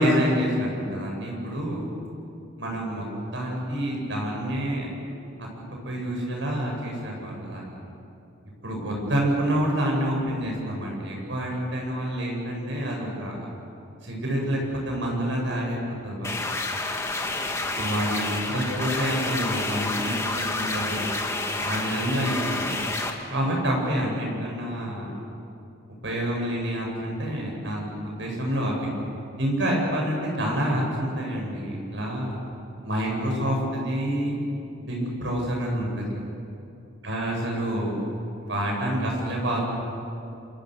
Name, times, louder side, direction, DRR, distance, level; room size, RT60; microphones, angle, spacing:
voice 1, 0.0-1.8 2.6-3.0 3.3-4.9 5.4-5.5 5.8-7.7 8.6-13.4 14.0-16.4 17.8-21.1 21.6-22.7 23.3-25.1 26.0-28.9 29.4-32.3 32.8-34.4 34.9-36.2 37.0-38.0 38.5-39.6, equal, 65° right, -1 dB, 8.0 m, -27 dB
sound 1, 16.2-23.1, left 2 dB, 15° left, 1.9 m, -29 dB
28.5 x 26.0 x 6.8 m, 2.7 s
head